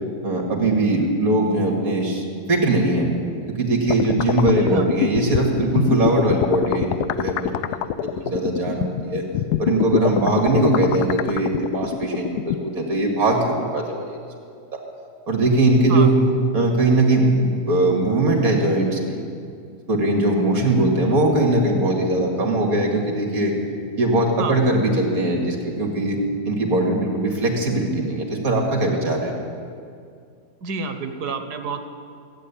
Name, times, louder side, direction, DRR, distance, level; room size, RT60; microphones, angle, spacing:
voice 1, 0.2-3.1 3.5-7.8 8.2-9.2 9.6-14.2 14.7-14.8 15.3-16.1 16.5-19.2 19.9-23.5 24.0-26.2 26.4-29.3, right 2 dB, 65° right, 1 dB, 2.6 m, -20 dB
sound 1, 3.9-12.6, left 11 dB, 85° left, 1.1 m, -24 dB
voice 2, 15.9-16.2 24.4-24.6 30.6-31.9, right 5 dB, 80° right, 7 dB, 1.6 m, -29 dB
15.5 x 9.2 x 8.5 m, 2.3 s
omnidirectional pair, 1.7 m